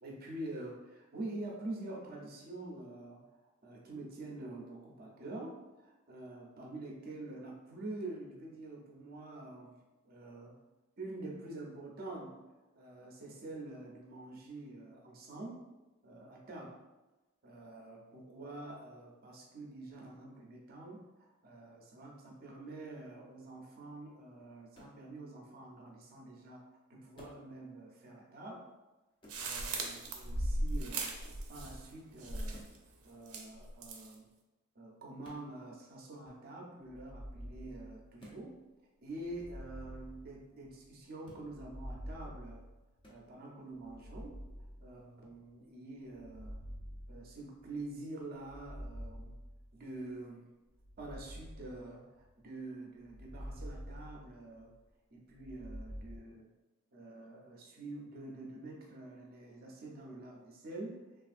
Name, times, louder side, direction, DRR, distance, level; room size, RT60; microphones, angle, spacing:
voice 1, 0.0-3.2 3.6-10.6 11.0-12.4 12.7-15.6 16.0-16.8 17.4-26.6 26.9-28.6 29.4-31.2 31.5-32.6 33.0-34.3 34.8-38.6 39.0-42.7 43.1-44.4 44.8-46.6 47.1-49.4 49.7-50.5 51.0-54.7 55.1-56.5 56.9-61.0, right 2 dB, 45° right, -1 dB, 0.6 m, -46 dB
sound 1, 24.7-25.0 27.1-27.5 29.2-29.5 31.2-31.5 32.5-32.8 35.2-35.5 38.2-38.4 41.2-41.5 43.0-43.2, equal, 25° left, 0.5 m, -55 dB
sound 2, 29.3-31.9 32.2-32.8 33.3-34.1, right 2 dB, 90° right, 0.5 m, -37 dB
sound 3, 36.9-38.4 39.2-40.9 41.4-43.2 43.8-45.3 46.1-47.8 48.4-50.0 50.8-52.4 53.0-54.8 55.3-56.2, equal, 70° left, 0.6 m, -48 dB
3.3 x 2.4 x 2.4 m, 1.1 s
head